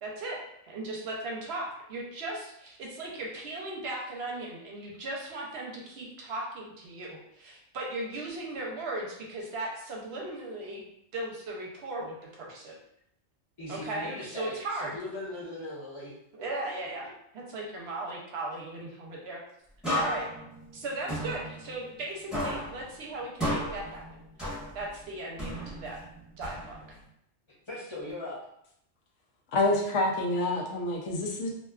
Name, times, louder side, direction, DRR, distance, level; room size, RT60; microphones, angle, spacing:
voice 1, 0.0-10.8 11.1-12.8 13.7-15.0 16.3-19.4 19.9-20.3 20.7-24.0 24.7-26.0 26.4-26.8, right 2 dB, 70° right, -2 dB, 0.8 m, -37 dB
voice 2, 13.6-16.1 27.7-28.4, left 2 dB, 30° left, -7 dB, 0.8 m, -39 dB
sound 1, 19.8-22.1 22.3-25.0 25.4-27.0, equal, ahead, 0.9 m, -34 dB
voice 3, 29.5-31.5, left 2 dB, 85° left, 0 dB, 0.9 m, -27 dB
2.6 x 2.2 x 2.3 m, 0.74 s
omnidirectional pair, 1.2 m